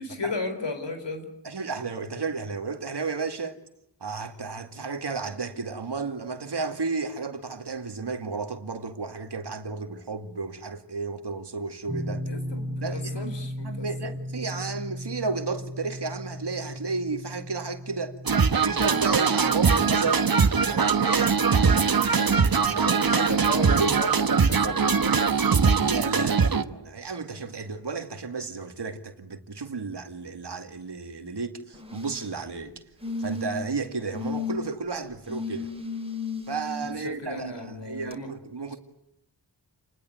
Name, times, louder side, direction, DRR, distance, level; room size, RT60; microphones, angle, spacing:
voice 1, 0.0-1.3 12.3-14.1 22.8-25.6 36.8-38.3, left 3 dB, 80° left, 4.4 m, -35 dB
voice 2, 1.4-3.6 4.0-12.3 12.8-13.3 13.6-22.9 23.3-24.0 25.8-32.8 33.2-35.7 36.5-38.8, right 4 dB, 70° right, 2.4 m, -33 dB
sound 1, 11.9-24.8, equal, ahead, 6.3 m, -38 dB
sound 2, 18.3-26.6, right 5 dB, 55° right, 1.3 m, -22 dB
sound 3, 31.7-32.3 33.0-33.7 34.1-34.6 35.3-36.9 38.1-38.2, left 3 dB, 15° right, 4.4 m, -33 dB
28.5 x 20.5 x 9.5 m
cardioid pair, 50°, 42 cm